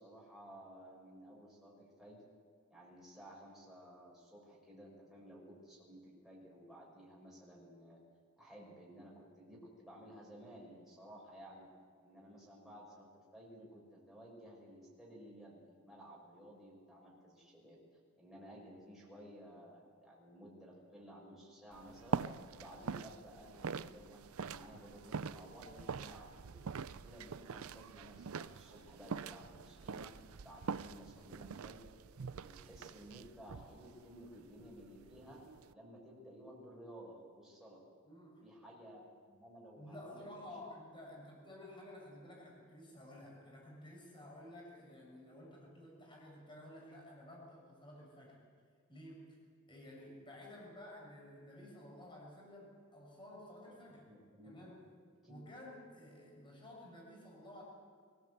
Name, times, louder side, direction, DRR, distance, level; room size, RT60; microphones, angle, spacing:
voice 1, 0.0-2.2 2.7-8.0 8.4-11.7 12.0-17.8 18.2-22.2 22.5-26.6 27.0-30.1 30.4-31.8 32.2-35.4 35.7-37.8 38.4-40.5 53.6-53.8 54.1-54.6 55.2-55.5, equal, ahead, -5 dB, 5.3 m, -55 dB
sound 1, 21.7-35.7, right 5 dB, 70° right, 0.5 m, -44 dB
voice 2, 38.0-38.5 39.8-48.4 48.9-49.4 49.7-54.1 54.4-54.8 55.3-57.6, left 1 dB, 20° left, -2 dB, 6.4 m, -53 dB
23.5 x 17.0 x 8.0 m, 2.1 s
head